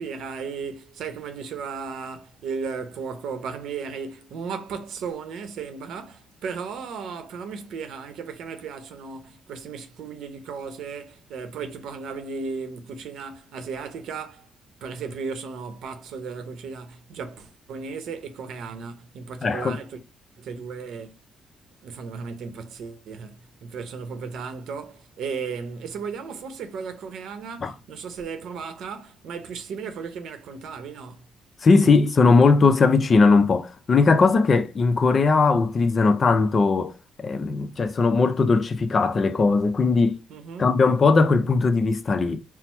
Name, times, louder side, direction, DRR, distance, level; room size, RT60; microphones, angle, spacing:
voice 1, 0.0-14.5 14.8-20.0 20.4-21.2 21.8-31.3 40.3-40.8, right 5 dB, 75° right, 0.7 m, -35 dB
voice 2, 19.4-19.8 27.6-27.7 31.6-36.9 37.2-40.2 40.6-42.4, left 4 dB, 40° left, 0.5 m, -19 dB
4.4 x 2.0 x 4.3 m
cardioid pair, 90°, 0 cm